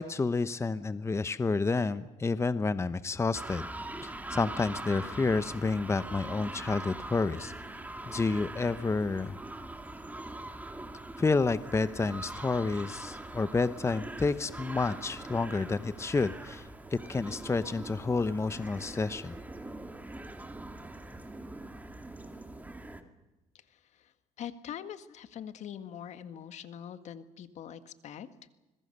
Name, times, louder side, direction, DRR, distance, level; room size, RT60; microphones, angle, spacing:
voice 1, 0.0-3.7 4.0-7.5 8.1-9.4 11.2-16.6 16.9-19.4, left 3 dB, 20° left, 13 dB, 1.0 m, -30 dB
sound 1, 3.3-23.0, right 2 dB, 10° right, 2.4 m, -42 dB
voice 2, 23.7-24.1 24.4-28.3, left 9 dB, 65° left, 10 dB, 1.8 m, -43 dB
26.0 x 21.5 x 6.8 m, 1.0 s
cardioid pair, 90°, 13 cm